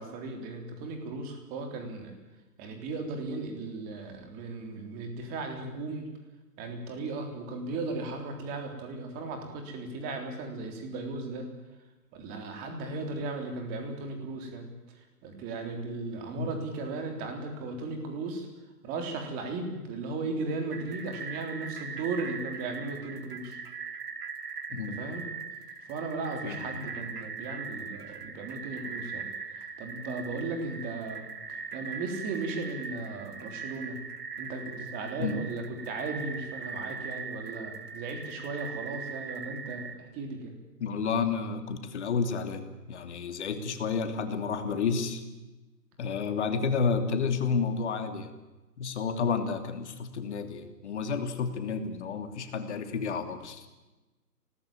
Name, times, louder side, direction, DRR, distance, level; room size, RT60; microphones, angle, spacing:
voice 1, 0.0-2.1 2.6-6.1 6.6-11.5 12.1-14.7 14.9-18.5 18.8-23.6 24.7-25.3 25.9-29.3 29.5-34.0 34.4-40.5, right 3 dB, 20° right, 4 dB, 3.6 m, -36 dB
sound 1, 20.7-40.0, right 5 dB, 75° right, 2.3 m, -40 dB
voice 2, 40.8-45.2 46.0-48.3 48.8-53.7, left 5 dB, 45° left, 8 dB, 3.0 m, -30 dB
26.0 x 19.0 x 8.9 m, 1.1 s
hypercardioid pair, 155°, 48 cm